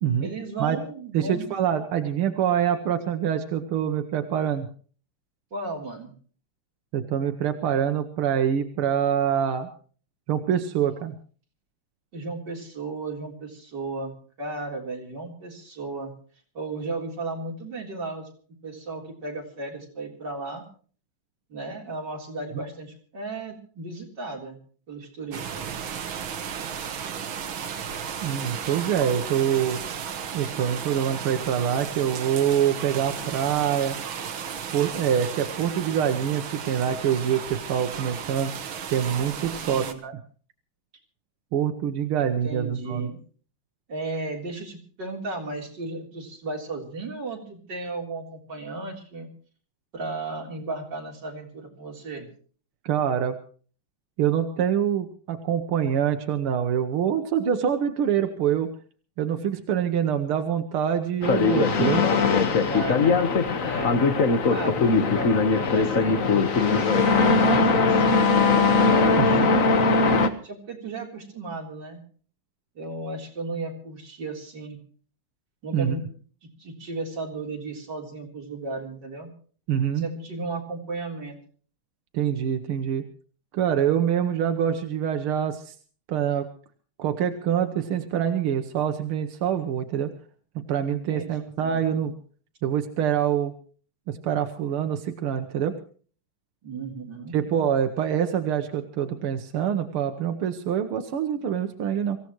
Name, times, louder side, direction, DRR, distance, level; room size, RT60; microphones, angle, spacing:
voice 1, 0.2-1.6 2.0-2.1 5.5-6.1 12.1-16.1 16.5-18.3 18.6-20.6 21.5-24.6 24.9-25.7 39.4-40.0 42.4-43.2 43.9-49.3 49.9-52.3 57.0-57.1 62.4-63.3 63.6-64.0 64.5-70.1 70.4-72.0 72.8-74.8 75.6-76.0 76.4-79.3 80.0-81.4 90.8-91.8 96.6-97.4, right 3 dB, 55° right, 0 dB, 4.2 m, -35 dB
voice 2, 1.1-4.7 6.9-9.7 10.3-11.2 22.5-22.6 28.2-29.8 30.3-34.0 34.7-38.5 38.9-40.2 41.5-43.1 52.8-53.4 54.2-58.7 59.2-62.1 69.2-69.5 75.7-76.0 79.7-80.1 82.1-83.0 83.5-85.8 86.1-86.5 87.0-90.1 90.7-92.1 92.6-93.5 94.1-95.8 97.3-102.2, right 9 dB, 90° right, 7 dB, 2.0 m, -25 dB
sound 1, 25.3-39.9, right 7 dB, 70° right, 2.1 m, -34 dB
sound 2, 61.2-70.3, left 4 dB, 45° left, 1.5 m, -20 dB
25.5 x 15.5 x 3.1 m, 0.43 s
omnidirectional pair, 2.3 m